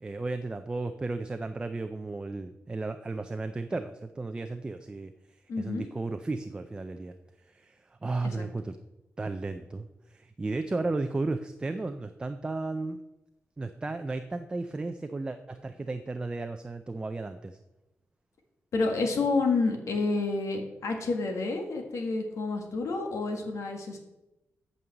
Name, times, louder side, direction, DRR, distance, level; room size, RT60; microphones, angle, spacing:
voice 1, 0.0-5.1 5.6-7.1 7.5-8.8 9.2-13.0 13.6-17.6, right 3 dB, 20° right, 8 dB, 0.4 m, -34 dB
voice 2, 5.5-5.9 8.2-8.5 18.7-24.0, left 3 dB, 85° left, 3 dB, 1.7 m, -29 dB
8.6 x 5.4 x 7.8 m, 0.97 s
wide cardioid pair, 165°, 5 cm